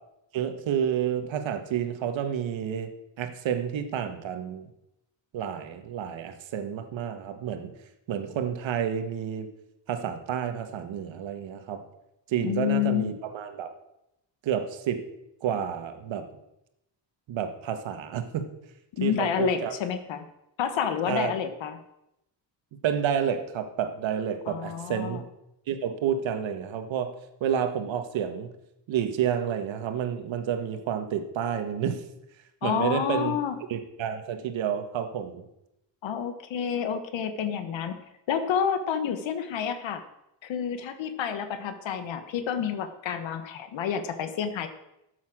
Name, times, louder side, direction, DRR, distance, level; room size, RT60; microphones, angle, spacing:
voice 1, 0.3-2.9 3.2-4.7 5.3-7.7 8.1-9.5 9.9-11.8 12.3-13.7 14.4-15.1 15.4-16.3 17.3-18.5 19.0-19.7 21.1-21.3 22.8-25.2 25.7-27.1 27.4-28.5 28.9-32.0 32.6-33.4 33.7-35.4, right 8 dB, 85° right, 7 dB, 1.7 m, -30 dB
voice 2, 12.4-13.1 19.0-20.2 20.6-21.8 24.5-25.2 32.6-33.6 36.0-38.0 38.3-40.0 40.4-44.7, left 8 dB, 80° left, 9 dB, 1.3 m, -29 dB
13.0 x 8.4 x 6.2 m, 0.85 s
wide cardioid pair, 170°, 44 cm